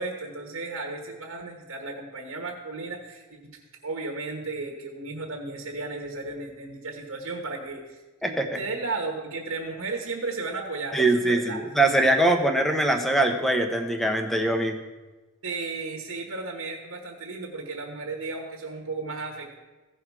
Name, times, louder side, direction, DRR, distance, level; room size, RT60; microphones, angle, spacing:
voice 1, 0.0-11.6 15.4-19.6, right 3 dB, 70° right, 1 dB, 1.3 m, -34 dB
voice 2, 8.2-8.6 10.9-14.8, right 2 dB, ahead, 5 dB, 0.9 m, -22 dB
15.5 x 5.6 x 4.7 m, 1.2 s
head